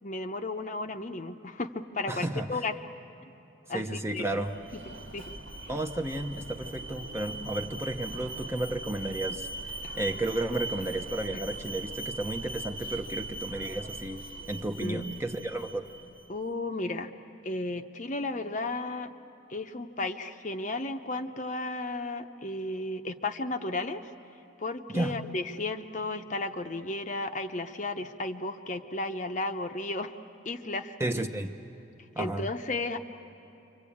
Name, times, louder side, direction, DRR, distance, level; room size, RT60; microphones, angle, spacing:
voice 1, 0.0-2.8 3.3-3.4 3.7-4.4 4.7-4.8 5.1-5.3 5.6-5.7 9.8-9.9 11.3-11.4 14.8-15.1 16.3-17.1 17.4-19.1 19.5-24.0 24.6-30.2 30.4-31.0 32.2-33.0, left 2 dB, 40° left, 7 dB, 0.8 m, -34 dB
voice 2, 2.1-2.6 3.7-4.6 5.7-15.9 24.9-25.2 31.0-31.6 32.2-32.5, right 1 dB, 15° right, 5 dB, 0.8 m, -33 dB
Alarm, 4.2-16.3, right 2 dB, 80° right, 1.6 m, -40 dB
28.5 x 24.5 x 8.6 m, 2.8 s
head